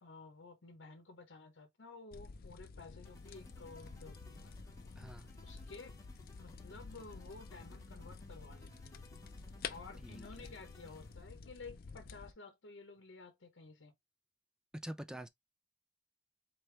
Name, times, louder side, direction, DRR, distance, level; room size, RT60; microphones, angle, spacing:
voice 1, 0.0-4.6 5.4-6.0 6.4-9.1 9.7-13.9, left 3 dB, 85° left, 0.9 m, -53 dB
sound 1, 2.1-12.3, left 5 dB, 55° left, 0.5 m, -50 dB
sound 2, 3.0-11.4, left 1 dB, 15° left, 1.1 m, -62 dB
voice 2, 5.0-5.3 10.0-10.5 14.8-15.3, right 1 dB, 5° right, 0.5 m, -47 dB
4.2 x 3.4 x 3.2 m
head